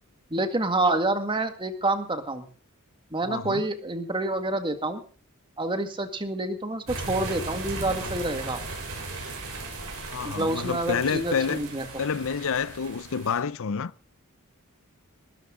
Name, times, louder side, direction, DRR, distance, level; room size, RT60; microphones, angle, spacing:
voice 1, 0.3-2.5 3.1-5.0 5.6-8.6 10.2-11.9, right 2 dB, 20° right, 1.9 m, -28 dB
voice 2, 3.2-3.6 10.1-11.6 12.0-13.9, left 6 dB, 65° left, 0.6 m, -28 dB
sound 1, 6.9-13.4, right 2 dB, 65° right, 6.4 m, -37 dB
20.0 x 13.0 x 3.8 m
head